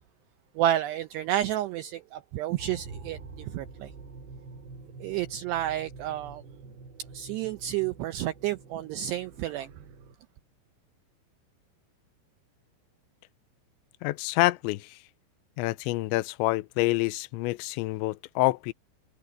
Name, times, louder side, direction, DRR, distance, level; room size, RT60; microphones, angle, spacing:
voice 1, 0.6-3.9 5.0-6.4 7.1-9.7, right 12 dB, 90° right, 2.4 m, -30 dB
sound 1, 2.6-10.2, right 4 dB, 60° right, 7.9 m, -46 dB
voice 2, 14.0-15.0 15.6-18.7, left 20 dB, 80° left, 2.8 m, -27 dB
omnidirectional pair, 5.8 m